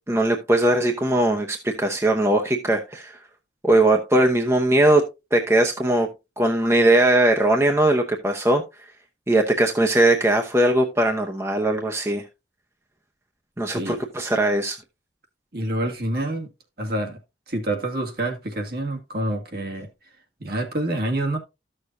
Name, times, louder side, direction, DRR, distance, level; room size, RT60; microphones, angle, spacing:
voice 1, 0.1-3.2 3.6-5.0 5.3-6.1 6.4-8.6 9.3-12.2 13.6-14.8, right 1 dB, 15° right, 0.8 m, -20 dB
voice 2, 13.7-14.0 15.5-16.5 16.8-17.2 17.5-19.9 20.4-21.4, right 1 dB, 55° right, 1.9 m, -27 dB
13.5 x 6.6 x 2.6 m
head